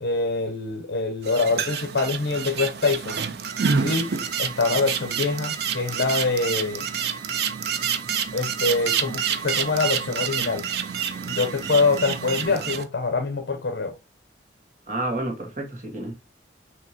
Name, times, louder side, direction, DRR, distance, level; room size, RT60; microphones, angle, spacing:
voice 1, 0.0-3.2 3.8-4.1 4.4-6.8 8.3-10.6 11.2-13.9, left 3 dB, 70° left, 0.7 m, -25 dB
sound 1, 1.2-12.8, right 7 dB, 60° right, 0.4 m, -28 dB
sound 2, 3.5-12.5, right 6 dB, 20° right, 0.8 m, -44 dB
voice 2, 14.9-16.1, right 1 dB, 45° right, 1.3 m, -30 dB
5.8 x 2.8 x 2.7 m
head